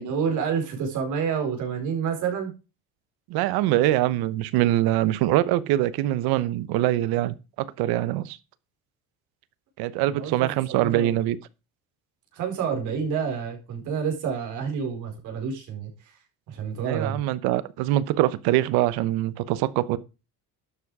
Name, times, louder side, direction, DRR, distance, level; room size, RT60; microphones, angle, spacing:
voice 1, 0.0-2.5 10.1-11.2 12.3-16.2 16.5-17.2, right 6 dB, 50° right, 4.5 m, -29 dB
voice 2, 3.3-8.4 9.8-11.4 16.9-20.0, right 14 dB, 85° right, 1.0 m, -23 dB
12.0 x 7.3 x 4.8 m
cardioid pair, 170°, 37 cm